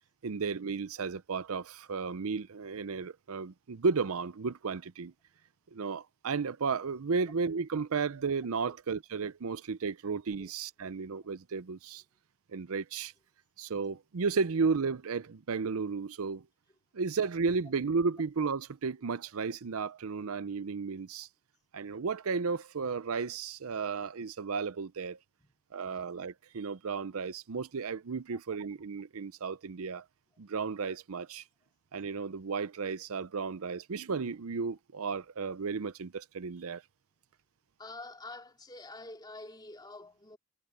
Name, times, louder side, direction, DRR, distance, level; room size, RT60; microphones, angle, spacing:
voice 1, 0.2-5.1 5.7-12.0 12.5-13.1 13.6-16.4 16.9-21.3 21.7-25.2 25.7-30.0 30.4-31.4 31.9-36.8, right 5 dB, 70° right, 0.6 m, -33 dB
voice 2, 37.8-40.4, left 2 dB, 20° left, 3.0 m, -47 dB
head